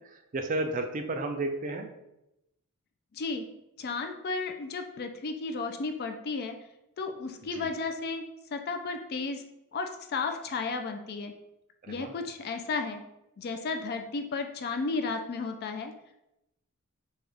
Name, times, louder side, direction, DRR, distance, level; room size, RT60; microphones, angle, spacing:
voice 1, 0.0-1.9 7.5-7.7 11.8-12.1, right 2 dB, 35° right, 5 dB, 0.4 m, -33 dB
voice 2, 3.1-3.4 3.8-6.6 7.0-8.2 8.5-9.4 9.7-11.3 11.9-13.0 13.4-15.9, left 4 dB, 45° left, 6 dB, 0.4 m, -33 dB
5.3 x 2.3 x 3.3 m, 0.89 s
head